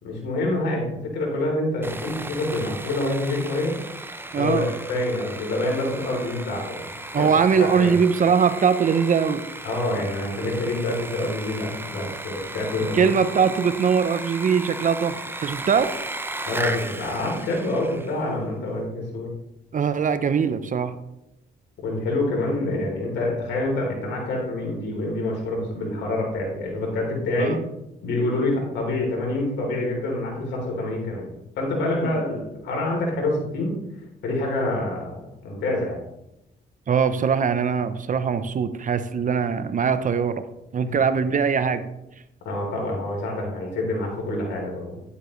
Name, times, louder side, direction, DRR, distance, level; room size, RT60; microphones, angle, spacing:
voice 1, 0.0-3.8 4.4-6.9 7.1-7.3 7.6-7.9 9.6-13.0 16.4-19.3 21.8-27.6 28.0-31.3 31.6-33.8 34.2-35.2 35.4-36.0 40.8-40.9 42.4-45.0, left 2 dB, 80° left, -1 dB, 3.5 m, -26 dB
Sawing, 1.8-18.3, right 2 dB, 10° right, 0.8 m, -36 dB
voice 2, 4.3-4.7 7.1-9.4 12.9-15.1 15.4-15.9 19.7-20.9 27.4-27.6 36.9-40.4 40.7-41.8, right 6 dB, 45° right, 11 dB, 0.8 m, -21 dB
10.5 x 8.2 x 3.2 m, 0.87 s
cardioid pair, 75°, 18 cm